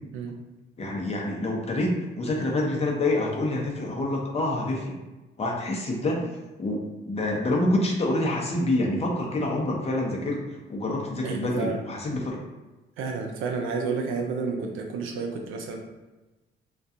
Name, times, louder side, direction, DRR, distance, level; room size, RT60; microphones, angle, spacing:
voice 1, 0.8-5.0 5.4-6.3 6.6-12.4, left 1 dB, 30° left, -1 dB, 0.6 m, -27 dB
voice 2, 11.2-11.8 13.0-15.8, right 4 dB, 90° right, 2 dB, 0.5 m, -30 dB
2.4 x 2.2 x 2.7 m, 1.1 s
cardioid pair, 90°, 20 cm